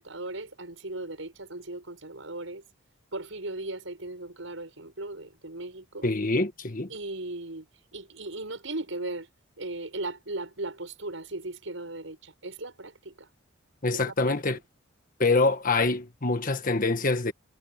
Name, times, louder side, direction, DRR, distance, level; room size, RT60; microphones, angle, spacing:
voice 1, 0.0-2.6 3.1-6.1 6.9-7.7 7.9-9.3 9.6-13.3 13.9-14.3, right 2 dB, 75° right, 6.6 m, -37 dB
voice 2, 6.0-6.9 13.8-14.6 15.2-17.3, left 3 dB, 45° left, 1.6 m, -25 dB
head